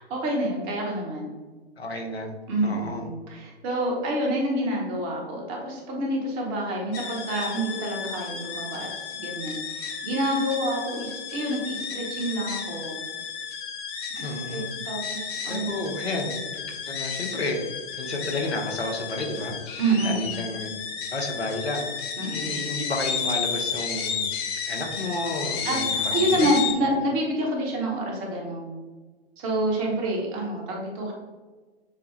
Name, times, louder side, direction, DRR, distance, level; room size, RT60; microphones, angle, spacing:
voice 1, 0.0-1.4 2.5-13.0 14.1-15.9 18.2-18.3 19.8-20.3 22.2-22.5 25.6-28.8 29.4-31.1, right 1 dB, 30° right, -1 dB, 1.1 m, -28 dB
voice 2, 1.8-2.3 2.6-3.1 14.1-14.7 15.5-17.6 17.9-19.5 20.0-20.7 21.1-21.9 22.3-24.2 24.6-26.6 26.8-27.0, left 2 dB, 75° left, 2 dB, 1.1 m, -31 dB
sound 1, 6.9-26.7, left 6 dB, 25° left, 0.5 m, -32 dB
6.8 x 2.3 x 3.3 m, 1.4 s
figure-of-eight pair, 115°, 31 cm